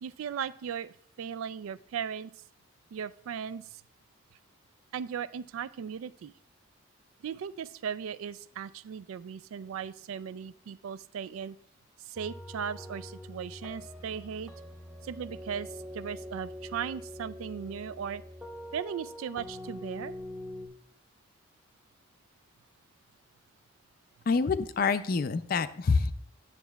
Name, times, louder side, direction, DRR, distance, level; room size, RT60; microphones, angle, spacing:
voice 1, 0.0-2.3 2.9-3.8 4.9-6.3 7.2-11.6 12.0-14.5 15.0-18.2 18.7-20.1, right 7 dB, 80° right, 17 dB, 0.3 m, -37 dB
sound 1, 12.1-20.7, left 1 dB, 5° right, 0.7 m, -44 dB
voice 2, 24.3-26.1, left 4 dB, 45° left, 12 dB, 0.3 m, -26 dB
9.7 x 7.2 x 2.3 m, 0.65 s
head